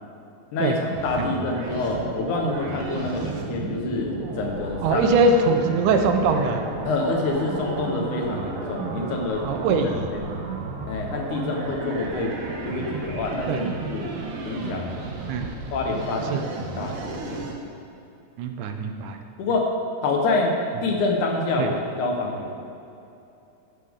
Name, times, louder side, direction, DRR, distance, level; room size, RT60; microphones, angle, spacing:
voice 1, 0.5-5.1 6.8-9.4 10.1-10.4 10.9-14.1 14.4-15.0 15.7-17.4 19.4-19.7 20.0-22.6, left 3 dB, 85° left, 1 dB, 2.8 m, -27 dB
sound 1, 0.9-17.5, right 3 dB, 55° right, 1.7 m, -33 dB
voice 2, 4.8-6.6 9.4-10.1 13.5-13.6 15.3-15.5 16.3-16.4 18.4-19.2 21.6-21.7, right 3 dB, 85° right, 5 dB, 2.3 m, -22 dB
13.5 x 10.0 x 3.7 m, 2.7 s
omnidirectional pair, 3.4 m